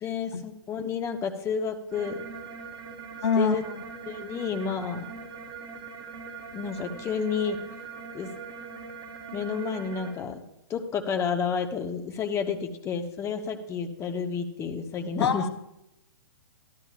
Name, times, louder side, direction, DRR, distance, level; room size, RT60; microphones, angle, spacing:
voice 1, 0.0-2.2 3.4-3.6 4.1-5.1 6.5-7.6 8.1-8.3 9.3-10.4 10.7-15.5, left 6 dB, 20° left, 4 dB, 0.9 m, -30 dB
sound 1, 1.9-10.1, right 5 dB, 35° right, 3.4 m, -41 dB
voice 2, 3.2-3.6 15.2-15.5, left 6 dB, 70° left, 9 dB, 0.9 m, -24 dB
12.5 x 12.0 x 2.5 m, 0.85 s
hypercardioid pair, 125°, 14 cm